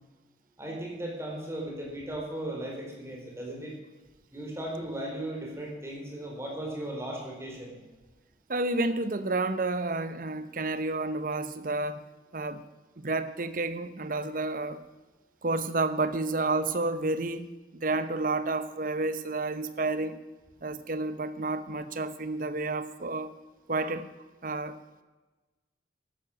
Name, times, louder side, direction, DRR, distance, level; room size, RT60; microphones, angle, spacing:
voice 1, 0.6-3.8 4.3-7.8, right 1 dB, 15° right, -1 dB, 4.0 m, -37 dB
voice 2, 8.5-12.0 12.3-12.6 13.0-14.8 15.4-20.2 20.6-23.3 23.7-24.1 24.4-24.8, right 2 dB, 50° right, 12 dB, 1.0 m, -30 dB
13.5 x 11.5 x 6.3 m, 1.2 s
head